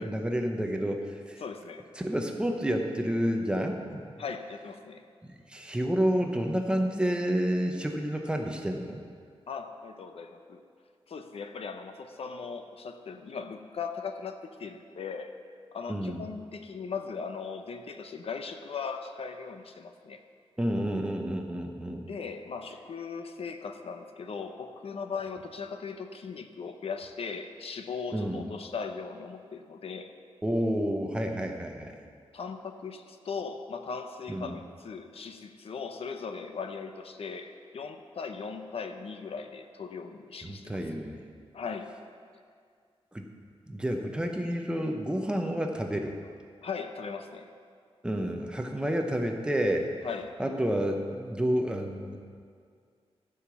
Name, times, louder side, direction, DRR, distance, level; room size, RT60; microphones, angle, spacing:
voice 1, 0.0-1.4 2.0-4.1 5.2-9.0 15.9-16.2 20.6-22.1 28.1-28.5 30.4-31.9 34.3-34.5 40.4-41.2 43.1-43.3 43.7-46.2 48.0-49.9 50.4-52.2, equal, 10° right, 2 dB, 0.8 m, -30 dB
voice 2, 1.4-1.9 4.2-5.0 9.5-10.6 11.1-15.4 15.7-20.2 22.1-30.1 32.3-40.8 41.5-42.0 46.6-47.5 50.0-50.4, left 5 dB, 70° left, 7 dB, 0.7 m, -38 dB
14.0 x 5.0 x 7.0 m, 2.1 s
wide cardioid pair, 165°, 10 cm